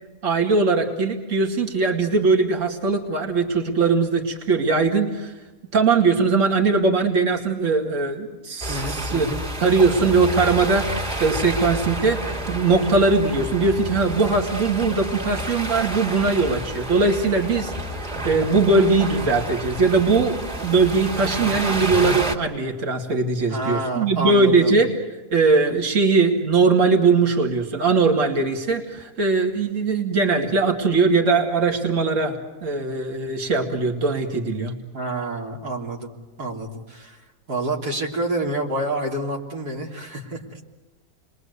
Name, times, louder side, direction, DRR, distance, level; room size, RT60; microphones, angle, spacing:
voice 1, 0.2-5.3 5.7-9.3 9.6-24.9 25.3-32.4 32.6-34.7, right 4 dB, 55° right, 2 dB, 2.6 m, -20 dB
sound 1, 8.6-22.4, equal, 30° right, 2.8 m, -30 dB
voice 2, 8.7-9.4 23.5-24.8 34.9-36.1 36.4-37.2 37.5-40.4, right 2 dB, 85° right, -1 dB, 3.9 m, -28 dB
30.0 x 22.0 x 8.2 m, 1.2 s
omnidirectional pair, 1.6 m